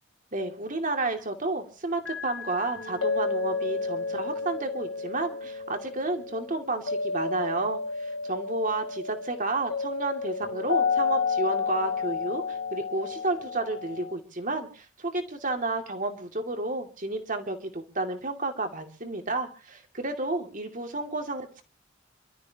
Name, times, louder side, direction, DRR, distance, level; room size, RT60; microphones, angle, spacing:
voice 1, 0.3-21.6, right 2 dB, 40° right, 5 dB, 2.5 m, -31 dB
sound 1, 2.1-14.1, left 4 dB, 70° left, 3.6 m, -31 dB
27.5 x 13.5 x 2.9 m, 0.36 s
head